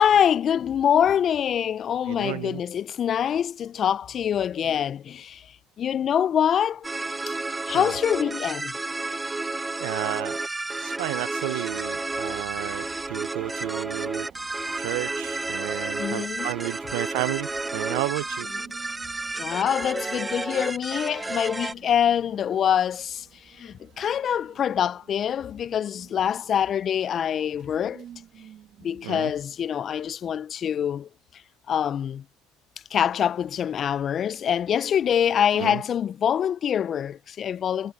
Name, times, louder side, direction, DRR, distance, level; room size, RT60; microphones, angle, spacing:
voice 1, 0.0-5.4 5.8-6.9 7.7-8.8 16.0-16.5 19.4-23.3 23.6-28.0 28.8-31.1 31.7-32.2 32.9-37.9, left 9 dB, 35° left, 0.3 m, -25 dB
voice 2, 2.0-2.6 7.7-7.9 9.8-10.4 10.8-14.3 14.8-18.5 29.0-29.3 35.5-35.8, right 24 dB, 85° right, 0.4 m, -32 dB
sound 1, 6.8-21.7, right 2 dB, 10° right, 0.6 m, -31 dB
sound 2, 11.7-30.0, right 10 dB, 45° right, 1.1 m, -53 dB
sound 3, 15.6-24.5, left 2 dB, 10° left, 6.9 m, -66 dB
cardioid pair, 125°, 0 cm